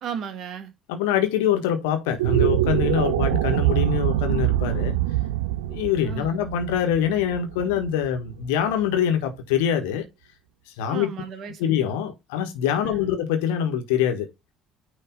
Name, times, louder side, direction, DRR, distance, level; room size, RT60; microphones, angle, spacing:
voice 1, 0.0-0.7 6.0-6.4 7.6-7.8 10.9-11.7 12.8-13.1, right 7 dB, 45° right, 1.6 m, -35 dB
voice 2, 0.9-4.9 5.7-10.0 10.8-11.1 11.6-14.3, left 9 dB, 65° left, 1.3 m, -24 dB
sound 1, 2.1-8.5, right 14 dB, 70° right, 0.4 m, -24 dB
9.4 x 3.3 x 3.7 m
figure-of-eight pair, 55°, 0 cm